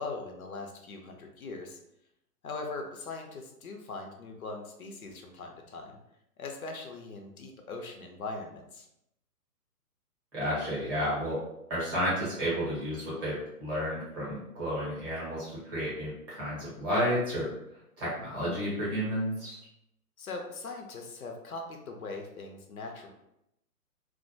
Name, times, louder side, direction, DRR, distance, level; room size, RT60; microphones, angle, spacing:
voice 1, 0.0-1.8 2.4-6.0 6.4-8.9 20.2-23.1, left 3 dB, 65° left, 3 dB, 0.6 m, -40 dB
voice 2, 10.3-11.4 11.7-17.5 18.0-19.6, equal, 15° right, -9 dB, 0.7 m, -31 dB
2.3 x 2.2 x 2.5 m, 0.83 s
figure-of-eight pair, 135°, 46 cm